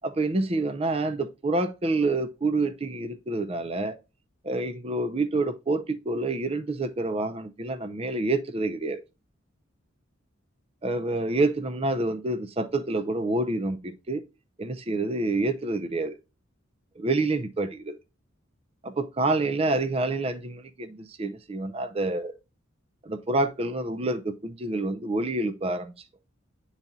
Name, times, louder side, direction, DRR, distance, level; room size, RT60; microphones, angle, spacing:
voice 1, 0.0-4.0 4.4-9.0 10.8-14.2 14.6-16.2 17.0-18.0 18.8-22.3 23.0-25.9, right 2 dB, 30° right, 0.6 m, -27 dB
10.5 x 4.1 x 2.3 m
head